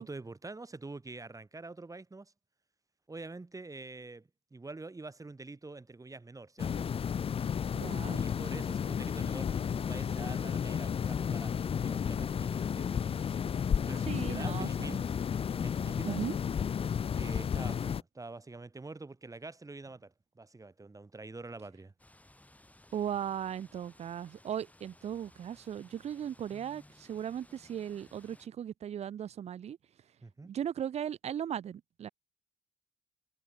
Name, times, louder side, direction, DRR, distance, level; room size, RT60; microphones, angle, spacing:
voice 1, 0.0-2.3 3.1-6.9 8.1-13.2 13.6-15.1 15.6-16.2 17.2-21.9 30.2-30.5, right 3 dB, 20° right, 1.9 m, -46 dB
sound 1, 6.6-18.0, left 7 dB, 35° left, 0.5 m, -32 dB
voice 2, 7.8-8.2 14.1-15.0 16.1-16.3 22.9-29.8 30.5-32.1, right 9 dB, 40° right, 0.4 m, -37 dB
sound 2, 22.0-28.5, left 1 dB, 10° left, 3.7 m, -59 dB
supercardioid pair, 65°, 16 cm